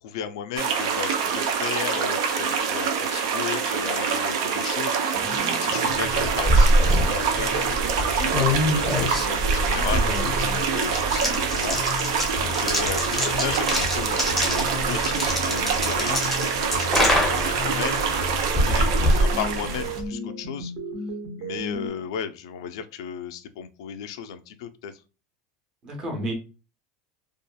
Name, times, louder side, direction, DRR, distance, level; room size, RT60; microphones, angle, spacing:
voice 1, 0.0-8.4 8.7-11.8 12.3-18.1 18.5-20.7 21.4-24.9, left 8 dB, 80° left, 9 dB, 0.4 m, -35 dB
sound 1, 0.6-20.0, right 6 dB, 75° right, 0.5 m, -26 dB
sound 2, 5.1-21.9, left 1 dB, 60° right, 1.0 m, -36 dB
sound 3, 6.0-20.1, equal, 5° left, 0.6 m, -25 dB
voice 2, 9.9-10.6 25.8-26.3, equal, 30° right, 2 dB, 0.8 m, -32 dB
2.7 x 2.4 x 2.2 m, 0.32 s
supercardioid pair, 160°, 3 cm